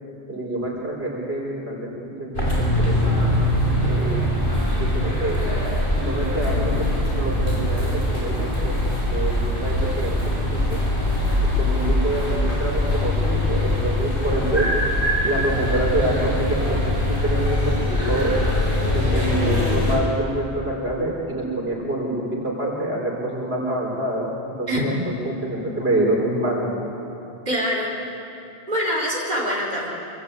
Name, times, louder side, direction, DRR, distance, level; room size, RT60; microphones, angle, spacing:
voice 1, 0.3-3.2 3.8-4.3 4.7-5.4 5.9-10.6 11.6-14.7 15.2-16.8 17.1-18.3 18.9-24.3 24.6-25.1 25.4-26.7, right 1 dB, 70° right, -2 dB, 4.8 m, -26 dB
sound 1, 2.3-20.0, left 1 dB, 55° left, 6.2 m, -22 dB
voice 2, 27.5-27.9 28.7-29.9, equal, 40° right, -3 dB, 4.5 m, -24 dB
26.5 x 26.0 x 8.4 m, 2.8 s
omnidirectional pair, 1.1 m